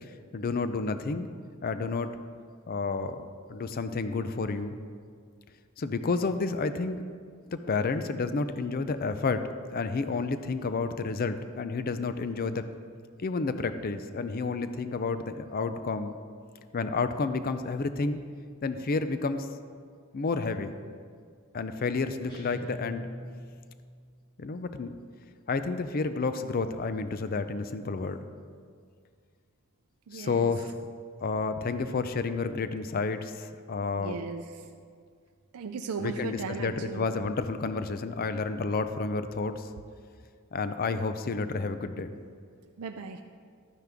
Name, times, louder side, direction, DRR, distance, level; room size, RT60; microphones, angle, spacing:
voice 1, 0.3-1.3 1.6-2.2 2.7-3.2 3.5-4.8 5.8-7.0 7.5-12.6 13.2-16.2 16.7-18.2 18.6-19.5 20.1-20.8 21.5-23.1 24.4-24.9 25.5-28.2 30.1-30.8 31.2-34.2 36.0-39.7 40.5-42.1, left 4 dB, 40° left, 10 dB, 0.4 m, -30 dB
sound 1, 22.3-24.0, equal, 20° left, 2.5 m, -42 dB
voice 2, 30.1-30.5 33.9-34.7 35.5-37.1 42.8-43.2, right 5 dB, 85° right, 6 dB, 0.4 m, -37 dB
12.0 x 9.4 x 3.5 m, 2.1 s
head